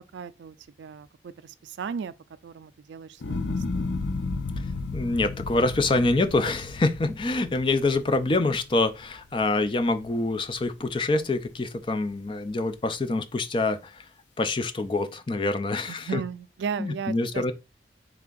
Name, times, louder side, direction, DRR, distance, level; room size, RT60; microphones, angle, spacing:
voice 1, 0.1-2.1 2.4-3.9 15.9-17.5, right 6 dB, 80° right, 0.3 m, -36 dB
sound 1, 3.2-9.5 10.0-10.6, left 3 dB, 90° left, 0.5 m, -33 dB
voice 2, 4.9-14.0 14.4-16.2 16.8-17.5, left 2 dB, 25° left, 0.4 m, -26 dB
3.5 x 3.3 x 3.8 m
head